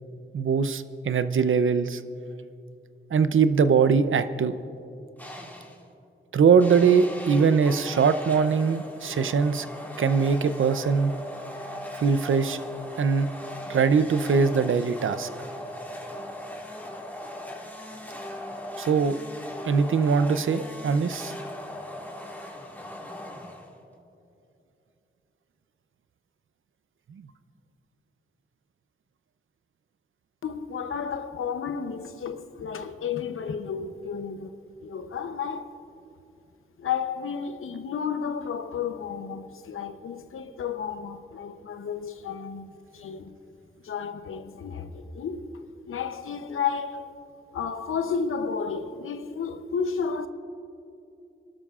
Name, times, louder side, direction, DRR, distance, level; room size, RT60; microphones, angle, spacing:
voice 1, 0.3-2.0 3.1-4.6 6.3-9.7 10.0-11.1 11.9-12.6 13.0-13.3 13.7-15.3 18.8-19.2 19.6-21.3 27.1-27.2, right 5 dB, 75° right, 0.6 m, -22 dB
sound 1, 5.2-5.9 6.6-23.9, left 1 dB, 10° left, 2.2 m, -39 dB
voice 2, 30.4-35.8 36.8-43.4 43.8-47.3 47.5-50.3, left 6 dB, 90° left, 0.8 m, -32 dB
27.5 x 12.5 x 2.5 m
cardioid pair, 55°, 21 cm